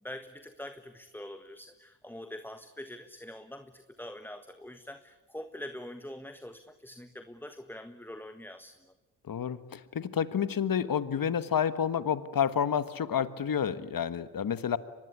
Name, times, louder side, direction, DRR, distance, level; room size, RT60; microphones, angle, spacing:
voice 1, 0.0-8.7, left 1 dB, 5° left, 9 dB, 1.5 m, -44 dB
voice 2, 9.2-14.8, left 8 dB, 50° left, 14 dB, 1.5 m, -29 dB
25.0 x 20.0 x 9.9 m, 1.2 s
supercardioid pair, 45°, 42 cm